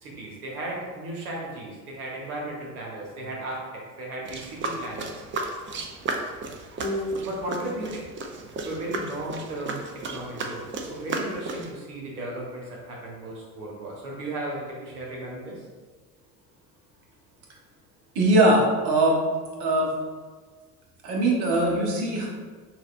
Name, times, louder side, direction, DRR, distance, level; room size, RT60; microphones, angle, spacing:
voice 1, 0.0-5.1 6.7-8.0 8.6-15.6, right 1 dB, 75° right, -2 dB, 1.3 m, -35 dB
sound 1, 4.3-11.7, right 3 dB, 25° right, 0.5 m, -34 dB
voice 2, 18.1-19.2 19.6-19.9 21.0-22.3, right 1 dB, 55° right, -2 dB, 1.3 m, -21 dB
6.1 x 2.5 x 2.5 m, 1.5 s
figure-of-eight pair, 65°, 46 cm